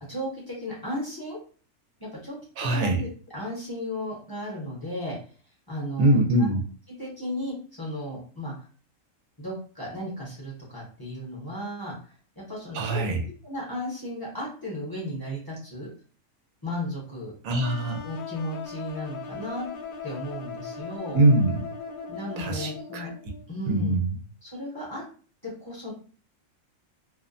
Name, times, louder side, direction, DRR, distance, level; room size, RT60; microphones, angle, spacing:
voice 1, 0.1-1.4 2.0-2.4 2.7-5.2 5.7-6.5 7.0-8.7 9.4-13.0 13.4-15.9 16.6-17.3 18.0-19.7 20.0-21.2 22.1-23.1 23.5-24.0 24.4-25.0 25.4-25.9, equal, 25° left, -5 dB, 0.6 m, -35 dB
voice 2, 2.6-3.0 6.0-6.6 12.7-13.2 17.4-18.0 21.1-21.6 22.4-23.1 23.7-24.1, right 1 dB, 85° right, 4 dB, 1.0 m, -23 dB
sound 1, 17.6-23.4, left 5 dB, 65° left, 0.5 m, -39 dB
2.5 x 2.1 x 2.4 m, 0.40 s
omnidirectional pair, 1.4 m